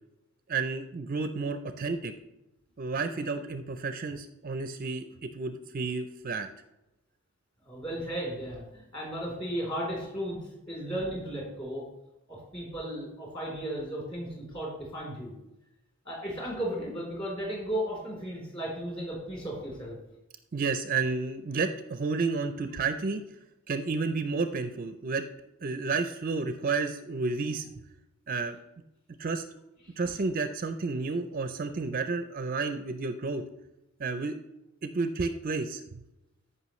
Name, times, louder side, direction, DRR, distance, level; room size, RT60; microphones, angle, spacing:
voice 1, 0.5-2.1 2.8-6.5 20.5-23.4 23.7-25.3 25.6-27.7 28.3-28.6 29.2-29.4 30.0-33.5 34.0-34.4 34.8-35.8, right 4 dB, 40° right, 9 dB, 0.4 m, -31 dB
voice 2, 7.6-10.4 10.7-11.9 12.3-15.3 16.1-20.0, right 1 dB, 25° left, -3 dB, 3.4 m, -35 dB
14.0 x 5.5 x 3.1 m, 0.91 s
head